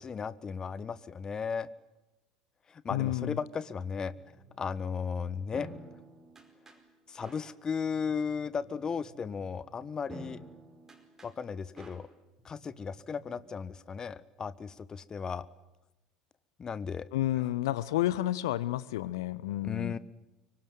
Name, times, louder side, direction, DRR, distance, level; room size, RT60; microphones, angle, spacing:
voice 1, 0.0-1.7 2.7-4.1 4.6-5.7 7.1-10.4 11.2-12.1 12.4-15.5 16.6-17.1 17.3-17.5 19.6-20.0, left 6 dB, 25° left, 18 dB, 1.2 m, -35 dB
voice 2, 2.9-3.4 17.1-20.0, left 14 dB, 65° left, 18 dB, 0.9 m, -30 dB
sound 1, 4.2-13.5, right 1 dB, 15° right, 4.9 m, -52 dB
25.0 x 24.0 x 9.4 m, 0.97 s
figure-of-eight pair, 65°, 3 cm